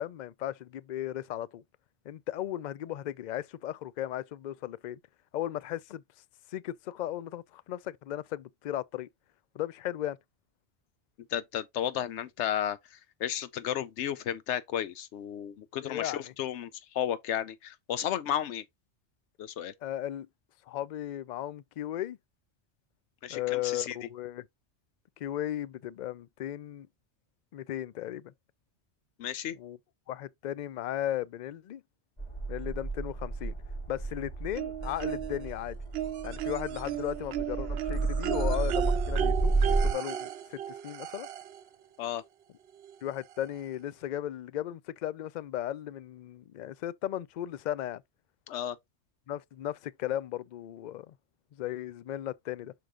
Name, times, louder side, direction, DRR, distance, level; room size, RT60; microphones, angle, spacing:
voice 1, 0.0-1.6 2.1-5.0 5.3-6.0 6.5-9.1 9.5-10.2 15.8-16.3 19.8-20.3 20.7-22.2 23.3-24.5 25.2-26.9 27.5-28.3 29.5-29.8 30.1-31.8 32.5-33.6 33.9-35.8 36.2-41.3 43.0-48.0 49.3-51.1 51.5-52.7, left 12 dB, 60° left, 0.5 m, -36 dB
voice 2, 11.3-18.6 19.4-19.7 23.2-24.1 29.2-29.6 42.0-42.2 48.5-48.8, left 10 dB, 85° left, 0.9 m, -33 dB
sound 1, 32.2-39.9, right 3 dB, 25° left, 3.1 m, -31 dB
sound 2, 34.5-35.5 35.9-41.6 42.8-42.9 43.3-43.4, right 10 dB, 70° right, 0.8 m, -35 dB
6.0 x 4.9 x 3.6 m
omnidirectional pair, 1.2 m